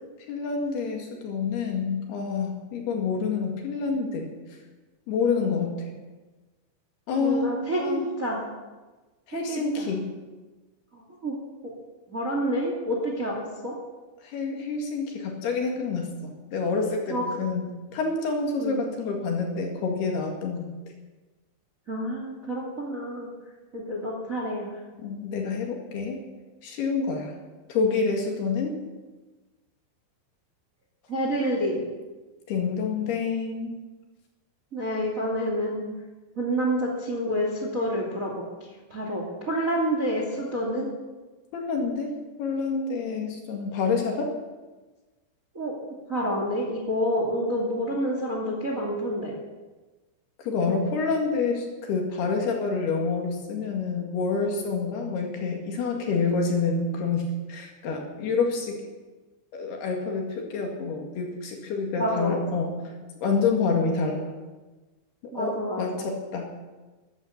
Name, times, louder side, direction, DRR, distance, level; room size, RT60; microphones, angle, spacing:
voice 1, 0.3-4.3 5.1-5.9 7.1-7.5 7.8-8.1 9.3-10.1 14.2-20.7 25.0-26.2 26.6-27.3 27.7-28.7 32.5-33.8 41.5-44.4 50.4-58.8 59.5-62.8 63.2-64.3 65.4-66.5, left 4 dB, 60° left, 1 dB, 3.7 m, -28 dB
voice 2, 7.2-8.4 9.3-9.8 10.9-11.3 12.1-13.8 17.1-17.2 18.6-18.8 21.9-23.3 23.7-24.7 31.1-31.8 34.7-35.8 36.4-40.9 45.5-45.7 46.1-49.3 50.7-50.8 55.9-56.1 62.0-62.6 65.3-66.1, equal, 25° right, 0 dB, 1.8 m, -28 dB
14.0 x 11.5 x 8.6 m, 1.2 s
omnidirectional pair, 5.6 m